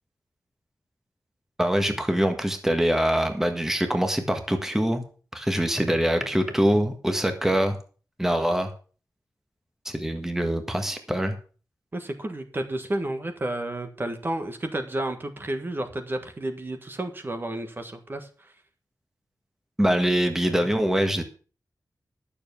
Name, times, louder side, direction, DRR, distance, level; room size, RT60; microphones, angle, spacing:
voice 1, 1.6-5.0 5.3-7.8 8.2-8.7 9.8-11.3 19.8-21.2, equal, 5° right, 6 dB, 1.6 m, -24 dB
voice 2, 11.9-18.5, right 1 dB, 30° right, 7 dB, 1.5 m, -31 dB
12.0 x 7.1 x 6.8 m, 0.39 s
wide cardioid pair, 135°, 7 cm